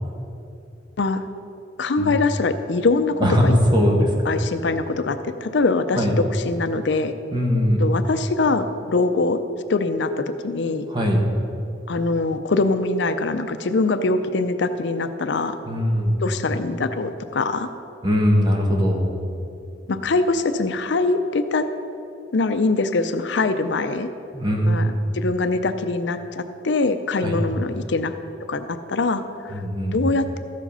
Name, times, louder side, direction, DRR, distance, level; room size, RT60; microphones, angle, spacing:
voice 1, 1.8-3.6 4.2-7.1 7.8-9.4 9.7-10.9 11.9-15.6 16.2-17.7 19.9-21.7 22.3-24.1 24.7-28.1 28.5-29.6 29.9-30.4, left 3 dB, 65° left, 9 dB, 0.5 m, -23 dB
voice 2, 3.2-4.1 6.0-6.1 7.3-7.8 10.9-11.2 15.7-16.1 18.0-19.1 24.3-24.9 27.2-27.4 29.5-30.0, equal, 25° right, 0 dB, 1.5 m, -20 dB
13.5 x 7.5 x 5.5 m, 2.7 s
head